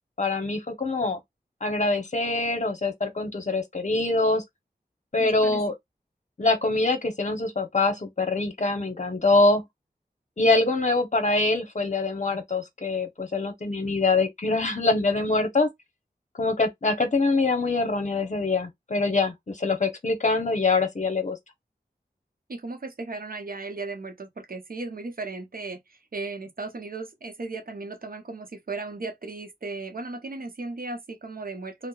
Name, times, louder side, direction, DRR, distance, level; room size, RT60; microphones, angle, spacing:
voice 1, 0.2-1.2 1.6-4.4 5.1-5.7 6.4-9.6 10.4-15.7 16.4-21.4, left 3 dB, 45° left, 0.8 m, -24 dB
voice 2, 5.2-5.6 22.5-31.9, right 3 dB, 60° right, 0.7 m, -36 dB
2.8 x 2.0 x 2.3 m
wide cardioid pair, 50°, 17 cm